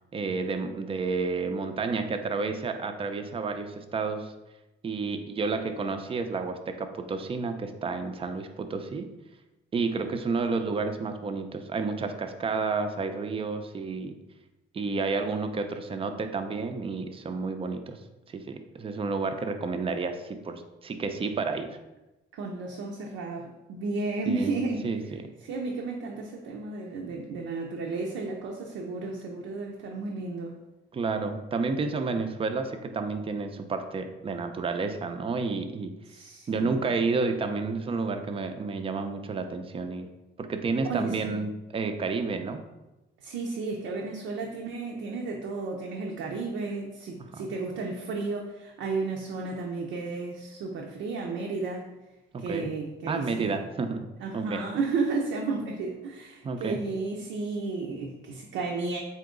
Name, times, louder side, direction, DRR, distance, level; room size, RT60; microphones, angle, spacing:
voice 1, 0.1-4.3 4.8-9.1 9.7-14.2 14.7-18.0 18.3-21.7 24.3-25.2 30.9-35.9 36.5-40.1 40.4-42.6 47.3-47.5 52.3-52.7 53.1-54.1 54.3-54.6 56.4-56.8, right 4 dB, 30° right, 7 dB, 0.4 m, -30 dB
voice 2, 22.3-24.9 25.4-30.6 36.1-36.9 40.8-41.4 43.2-51.9 52.4-53.6 54.2-59.0, right 3 dB, 85° right, 0 dB, 0.5 m, -33 dB
3.8 x 2.8 x 3.7 m, 1.0 s
cardioid pair, 90°, 20 cm